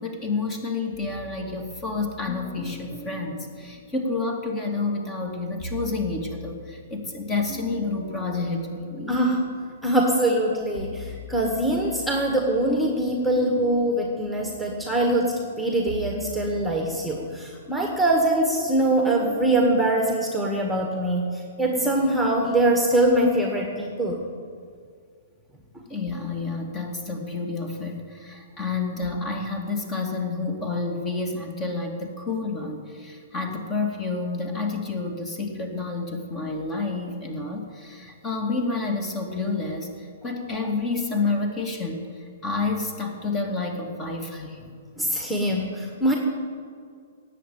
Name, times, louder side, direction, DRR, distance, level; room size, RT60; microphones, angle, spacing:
voice 1, 0.0-9.1 25.9-44.6, left 3 dB, 25° left, 3 dB, 2.4 m, -29 dB
sound 1, 0.9-4.4 5.4-9.8 10.3-19.5, equal, 40° left, 4.0 m, -41 dB
voice 2, 9.1-9.4 9.8-24.2 45.0-46.1, right 1 dB, ahead, 1 dB, 1.8 m, -23 dB
18.5 x 7.6 x 9.3 m, 2.1 s
figure-of-eight pair, 115°, 0 cm